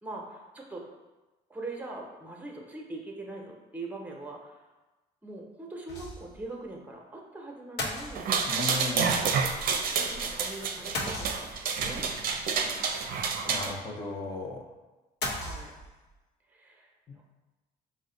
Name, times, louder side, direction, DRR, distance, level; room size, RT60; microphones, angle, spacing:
voice 1, 0.0-0.8 1.5-4.6 5.2-8.3 9.9-12.0 15.3-15.8 16.5-17.3, right 2 dB, 10° right, 0 dB, 0.8 m, -42 dB
sound 1, 5.9-6.4 6.7-6.8 7.8-8.7 10.9-11.8 15.2-16.1, left 2 dB, 80° left, 0.8 m, -36 dB
sound 2, 8.1-13.7, right 5 dB, 60° right, 0.5 m, -29 dB
voice 2, 8.5-9.2 13.5-14.7 17.1-17.2, left 3 dB, 25° left, 0 dB, 0.6 m, -35 dB
4.9 x 2.1 x 3.8 m, 1.1 s
cardioid pair, 110°, 17 cm